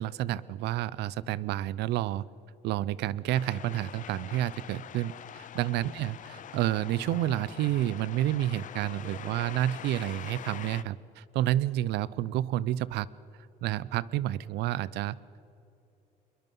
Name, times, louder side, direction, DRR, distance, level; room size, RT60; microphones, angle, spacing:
voice 1, 0.0-2.2 2.6-13.1 13.6-15.2, right 13 dB, 80° right, 20 dB, 0.6 m, -30 dB
sound 1, 3.3-10.8, left 10 dB, 50° left, 0.8 m, -44 dB
23.0 x 22.0 x 5.5 m, 2.8 s
cardioid pair, 110°, 17 cm